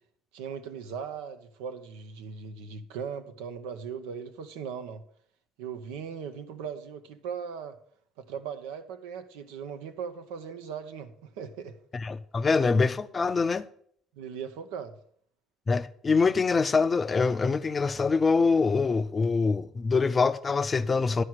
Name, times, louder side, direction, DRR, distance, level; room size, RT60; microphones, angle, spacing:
voice 1, 0.3-5.0 5.6-7.7 8.2-11.8 14.1-14.9, right 7 dB, 85° right, 0.8 m, -38 dB
voice 2, 11.9-13.6 15.7-21.2, left 4 dB, 30° left, 0.5 m, -24 dB
11.0 x 4.8 x 6.2 m
supercardioid pair, 75°, 0 cm